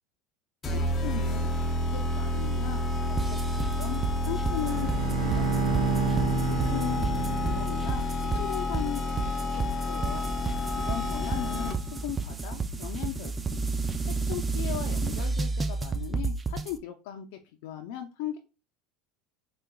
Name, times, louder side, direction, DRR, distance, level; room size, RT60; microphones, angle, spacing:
sound 1, 0.6-12.0, left 1 dB, 25° left, 0.6 m, -30 dB
voice 1, 0.7-1.5 1.9-10.3 10.8-13.6 14.1-17.3 17.6-18.4, left 11 dB, 70° left, 3 dB, 0.6 m, -38 dB
sound 2, 3.2-16.7, right 4 dB, 15° right, 0.4 m, -31 dB
Bowed string instrument, 4.6-8.1, right 5 dB, 80° right, 0.6 m, -30 dB
4.8 x 2.4 x 2.3 m, 0.31 s
supercardioid pair, 130°, 0 cm